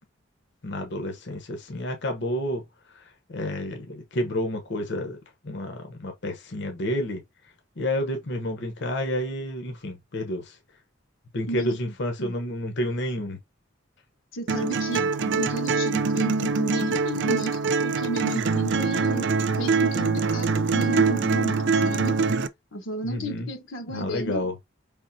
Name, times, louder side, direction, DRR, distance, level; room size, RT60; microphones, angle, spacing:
voice 1, 0.6-2.6 3.3-5.2 5.4-7.2 7.8-10.6 11.3-13.4 23.0-23.5 23.9-24.5, left 1 dB, 65° left, 1.0 m, -30 dB
voice 2, 11.5-11.9 12.2-12.3 14.3-19.3 19.6-22.2 22.7-24.5, right 1 dB, 85° left, 1.2 m, -33 dB
sound 1, 14.5-22.5, right 4 dB, 65° right, 0.5 m, -24 dB
5.1 x 3.6 x 2.7 m
head